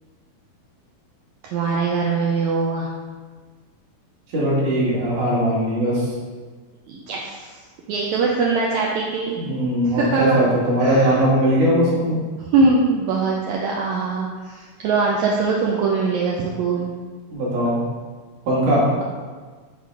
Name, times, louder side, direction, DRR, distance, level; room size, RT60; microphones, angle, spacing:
voice 1, 1.4-2.9 6.9-7.6 7.9-9.4 9.9-10.4 10.8-11.2 12.4-16.9, right 4 dB, 85° right, -2 dB, 1.6 m, -22 dB
voice 2, 4.3-6.1 9.4-12.2 17.3-17.8 18.5-18.9, equal, 65° right, -7 dB, 3.1 m, -19 dB
6.6 x 3.9 x 4.7 m, 1.5 s
omnidirectional pair, 4.0 m